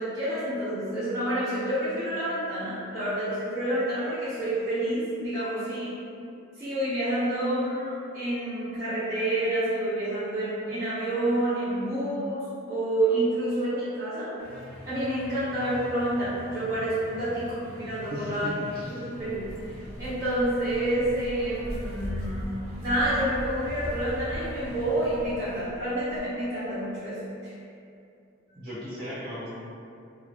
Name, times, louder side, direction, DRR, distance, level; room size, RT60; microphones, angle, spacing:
voice 1, 0.0-5.9 6.6-14.3 14.8-17.5 17.7-18.5 19.2-19.5 20.0-22.5 22.8-27.2 27.4-27.5, right 1 dB, 15° right, -17 dB, 1.5 m, -28 dB
sound 1, 14.4-25.3, equal, 75° right, 0.5 m, -44 dB
voice 2, 18.1-19.0 28.5-29.5, equal, 45° right, -13 dB, 1.4 m, -37 dB
Walk footsteps, 19.2-26.2, equal, 65° left, 0.6 m, -39 dB
3.0 x 2.4 x 2.2 m, 2.5 s
head